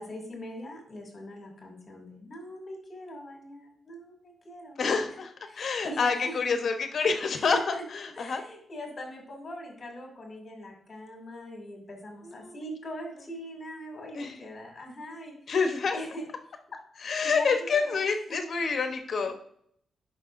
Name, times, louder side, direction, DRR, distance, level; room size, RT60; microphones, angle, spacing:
voice 1, 0.0-5.1 5.5-6.6 7.5-7.8 8.2-15.3 15.9-16.2 17.2-18.0, equal, 35° left, 1 dB, 2.4 m, -41 dB
voice 2, 4.8-8.4 12.2-12.7 14.1-14.4 15.5-16.0 16.9-19.4, left 5 dB, 55° left, 6 dB, 0.9 m, -28 dB
9.6 x 5.8 x 2.6 m, 0.67 s
wide cardioid pair, 125°, 0 cm